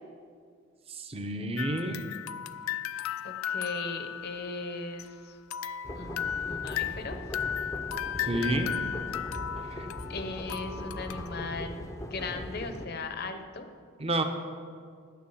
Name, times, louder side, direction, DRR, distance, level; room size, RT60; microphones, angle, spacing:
voice 1, 0.9-2.0 8.2-8.7 9.7-9.9 14.0-14.2, right 2 dB, 25° right, 6 dB, 0.7 m, -30 dB
sound 1, 1.6-5.1 5.5-11.5, left 9 dB, 75° left, 0.3 m, -35 dB
voice 2, 3.2-5.4 5.9-7.1 9.6-9.7 10.1-13.7, left 3 dB, 45° left, 7 dB, 0.8 m, -38 dB
sound 2, 5.8-12.9, left 1 dB, 15° left, 0.6 m, -39 dB
9.5 x 7.5 x 7.1 m, 2.1 s
head